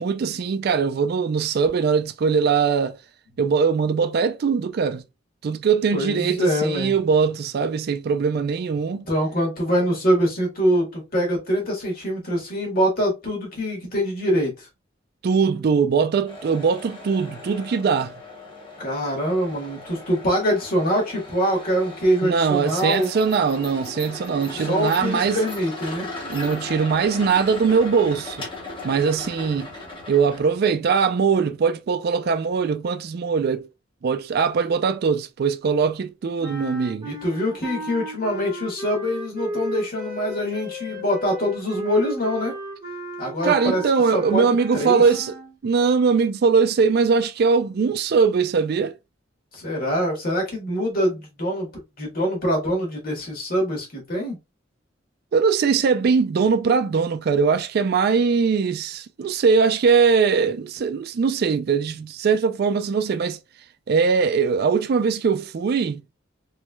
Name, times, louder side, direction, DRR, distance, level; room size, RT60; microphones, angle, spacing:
voice 1, 0.0-3.0 3.4-5.0 5.4-9.1 15.2-18.2 22.2-25.4 26.3-28.5 28.8-29.7 30.1-33.7 34.0-37.1 43.4-45.4 45.6-48.9 55.3-63.4 63.9-66.0, right 5 dB, 55° right, 0.3 m, -21 dB
voice 2, 5.9-7.0 9.0-14.7 18.8-23.1 24.5-26.1 37.0-42.5 43.2-43.8 44.1-45.0 49.5-51.7 52.0-54.4, equal, 50° left, 1.4 m, -24 dB
sound 1, 16.3-30.6, left 2 dB, 25° left, 0.9 m, -37 dB
sound 2, 36.4-45.6, right 1 dB, 20° right, 1.1 m, -34 dB
3.1 x 3.1 x 2.2 m
head